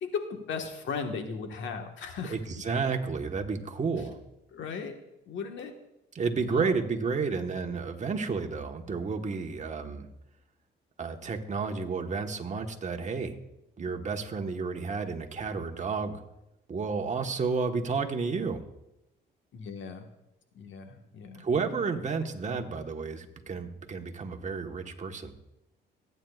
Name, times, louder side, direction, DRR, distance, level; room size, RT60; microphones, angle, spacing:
voice 1, 0.0-2.4 4.5-5.0 5.3-5.7 6.5-6.7 19.5-20.1 20.5-21.5, left 5 dB, 70° left, 5 dB, 1.5 m, -36 dB
voice 2, 2.3-4.2 6.1-10.1 11.0-13.4 13.8-16.2 16.7-18.6 21.4-25.3, right 4 dB, 35° right, 4 dB, 1.3 m, -31 dB
25.5 x 9.2 x 2.4 m, 0.91 s
cardioid pair, 90°, 20 cm